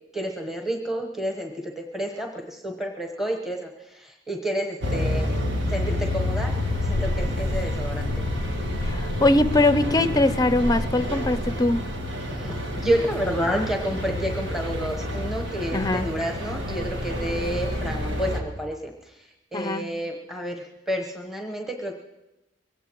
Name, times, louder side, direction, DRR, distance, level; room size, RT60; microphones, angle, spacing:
voice 1, 0.1-5.3 5.7-8.1 12.3-18.9 19.5-20.5 20.9-21.9, equal, ahead, 1 dB, 1.1 m, -30 dB
sound 1, 4.8-18.4, left 1 dB, 75° right, 1.7 m, -28 dB
voice 2, 8.9-11.8 15.7-16.1 19.5-19.9, left 2 dB, 20° left, 12 dB, 0.5 m, -21 dB
22.5 x 17.0 x 3.1 m, 1.0 s
head